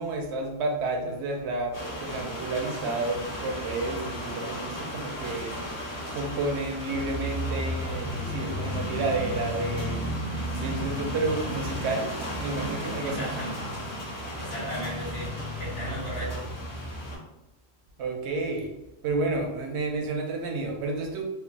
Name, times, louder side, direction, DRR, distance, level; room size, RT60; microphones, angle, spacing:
voice 1, 0.0-5.5 6.1-10.0 10.6-12.1 12.4-13.3 18.0-18.7 19.0-21.2, right 2 dB, 80° right, 2 dB, 0.8 m, -30 dB
sound 1, 1.7-17.2, equal, 20° left, 0.8 m, -34 dB
voice 2, 13.0-13.5 14.4-15.3 15.6-16.3, equal, 85° left, -8 dB, 1.7 m, -35 dB
3.2 x 2.2 x 2.3 m, 0.95 s
omnidirectional pair, 1.1 m